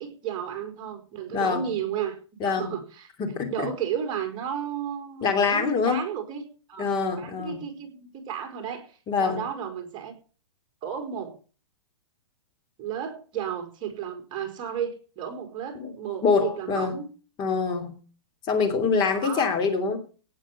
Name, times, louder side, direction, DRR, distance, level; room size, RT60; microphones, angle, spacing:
voice 1, 0.0-2.2 2.4-6.9 7.2-10.2 10.8-11.4 12.8-17.1 19.2-19.4, right 8 dB, 30° right, 5 dB, 4.2 m, -33 dB
voice 2, 1.3-1.7 2.4-2.7 3.2-3.7 5.2-6.0 6.8-7.7 9.1-9.4 15.8-15.9 16.2-16.9 17.4-18.0 18.5-20.0, left 5 dB, 25° left, 5 dB, 3.0 m, -25 dB
17.5 x 7.3 x 7.4 m, 0.39 s
hypercardioid pair, 135°, 16 cm